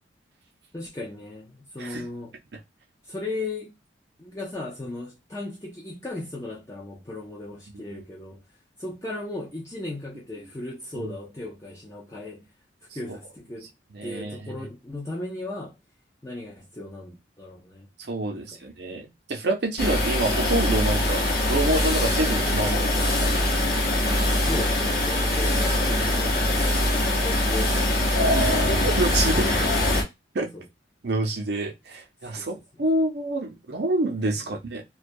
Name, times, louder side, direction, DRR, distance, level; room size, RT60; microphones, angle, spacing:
voice 1, 0.7-2.4 3.0-3.7 4.2-8.4 8.8-12.5 12.8-13.7 14.0-15.8 16.2-17.9 18.3-18.6 24.5-27.8 28.1-28.9 29.3-30.1 30.5-30.6 32.4-32.5 34.4-34.5, left 2 dB, 15° left, 0.5 m, -37 dB
voice 2, 13.9-14.4 18.0-21.2 21.5-23.4 24.6-24.7 28.2-28.5 28.8-29.6 30.3-30.5 31.0-34.8, right 2 dB, 60° right, 0.6 m, -27 dB
sound 1, 19.8-30.0, left 1 dB, 50° left, 0.8 m, -23 dB
2.3 x 2.2 x 2.6 m
head